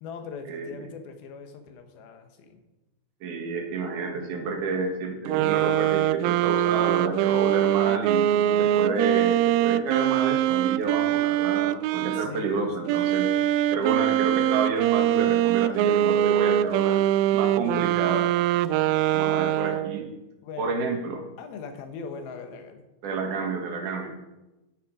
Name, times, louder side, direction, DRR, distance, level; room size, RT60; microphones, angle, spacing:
voice 1, 0.0-2.6 12.1-12.7 20.4-20.7 21.4-22.8, left 5 dB, 85° left, 6 dB, 3.1 m, -40 dB
voice 2, 3.2-13.3 13.7-17.0 17.3-18.3 19.1-20.1 20.6-21.3 23.0-24.1, right 4 dB, 60° right, 3 dB, 2.9 m, -30 dB
sound 1, 5.3-12.3 12.9-20.0, right 12 dB, 85° right, 2.3 m, -23 dB
11.5 x 10.5 x 4.9 m, 1.0 s
omnidirectional pair, 4.2 m